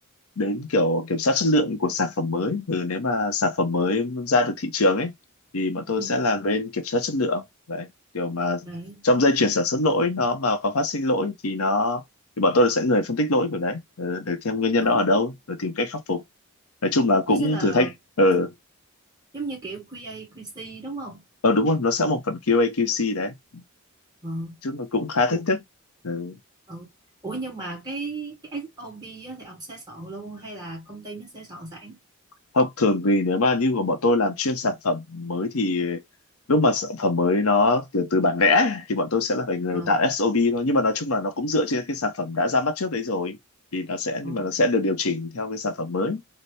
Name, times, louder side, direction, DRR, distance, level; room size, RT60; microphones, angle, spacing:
voice 1, 0.4-5.1 5.5-7.9 8.1-8.7 9.0-12.0 12.4-16.2 16.8-17.9 18.2-18.5 21.4-23.6 24.6-25.6 26.0-26.4 32.5-36.0 36.5-43.4 43.7-46.2, left 2 dB, 70° left, 0.8 m, -23 dB
voice 2, 8.6-9.0 14.8-15.0 17.3-17.9 19.3-21.2 24.2-24.5 25.3-25.4 26.7-26.9 27.2-32.0 39.7-40.0 44.2-44.5, right 2 dB, 20° right, 1.7 m, -36 dB
4.1 x 2.1 x 3.3 m
head